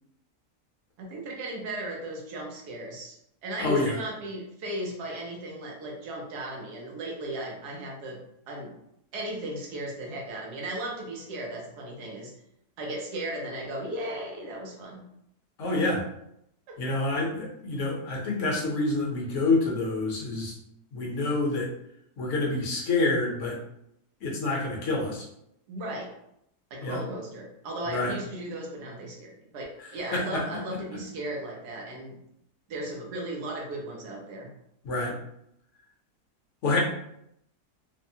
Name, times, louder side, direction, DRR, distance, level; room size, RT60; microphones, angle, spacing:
voice 1, 1.0-8.7 9.1-12.3 12.8-15.0 16.7-16.8 25.7-26.1 26.7-29.7 29.9-32.2 32.7-34.5, right 1 dB, 75° right, -1 dB, 1.3 m, -36 dB
voice 2, 3.6-4.0 15.6-16.0 16.8-20.5 20.9-21.7 22.2-23.6 24.2-25.2 26.8-27.0 27.9-28.1 30.1-30.4 34.8-35.1 36.6-36.8, left 2 dB, 55° left, -2 dB, 1.0 m, -27 dB
3.3 x 2.1 x 2.7 m, 0.76 s
omnidirectional pair, 1.7 m